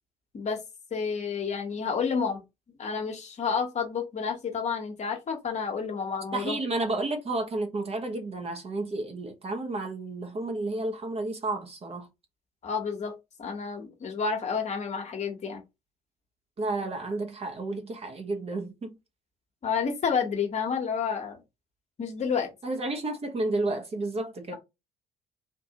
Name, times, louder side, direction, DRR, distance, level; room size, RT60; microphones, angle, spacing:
voice 1, 0.9-2.4 2.8-6.6 12.6-13.1 13.4-15.6 19.6-21.4 22.0-22.5, left 6 dB, 35° left, 1.1 m, -30 dB
voice 2, 6.3-12.1 16.6-19.0 22.6-24.6, right 2 dB, 30° right, 1.0 m, -31 dB
3.7 x 2.6 x 2.9 m
figure-of-eight pair, 50°, 19 cm